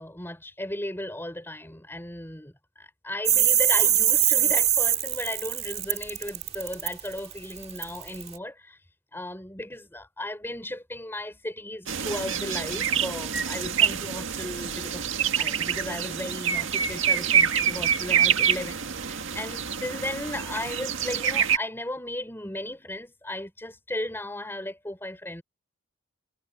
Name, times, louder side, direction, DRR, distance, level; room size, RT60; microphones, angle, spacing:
voice 1, 0.0-8.8 9.1-15.0 15.4-25.4, left 1 dB, 10° left, 4.7 m, -36 dB
sound 1, 3.3-8.4, right 10 dB, 30° right, 2.1 m, -22 dB
sound 2, 11.9-21.6, right 8 dB, 70° right, 1.9 m, -26 dB
head